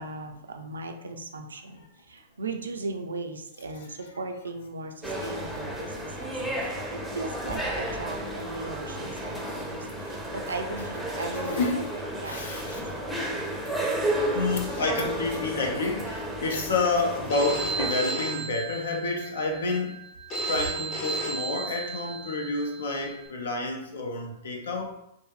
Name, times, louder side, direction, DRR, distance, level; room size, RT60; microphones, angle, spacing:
voice 1, 0.0-12.4, right 3 dB, 85° right, 4 dB, 0.4 m, -38 dB
sound 1, 5.0-17.9, right 1 dB, ahead, 0.6 m, -32 dB
voice 2, 9.0-9.3 11.3-11.9 12.2-12.9 14.2-20.0 20.5-25.0, left 3 dB, 75° left, 2 dB, 0.6 m, -29 dB
Telephone, 17.3-23.3, right 2 dB, 40° left, 0.9 m, -34 dB
2.6 x 2.6 x 2.3 m, 0.80 s
hypercardioid pair, 110°, 0 cm